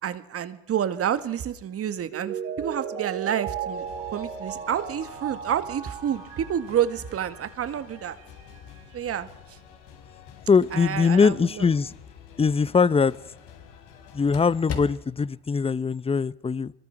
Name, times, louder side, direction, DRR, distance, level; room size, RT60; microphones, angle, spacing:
voice 1, 0.0-3.8 4.1-8.2 8.9-9.6 10.7-11.7, right 9 dB, 50° right, 2.1 m, -29 dB
Mallet percussion, 2.1-7.6 8.0-8.1, right 8 dB, 80° right, 5.3 m, -36 dB
sound 1, 3.7-14.6, left 8 dB, 80° left, 5.1 m, -49 dB
sound 2, 10.2-15.4, left 6 dB, 55° left, 3.7 m, -42 dB
voice 2, 10.5-11.9 12.4-13.2 14.1-16.7, left 5 dB, 20° left, 0.8 m, -21 dB
25.5 x 22.0 x 6.1 m
supercardioid pair, 80°, 30 cm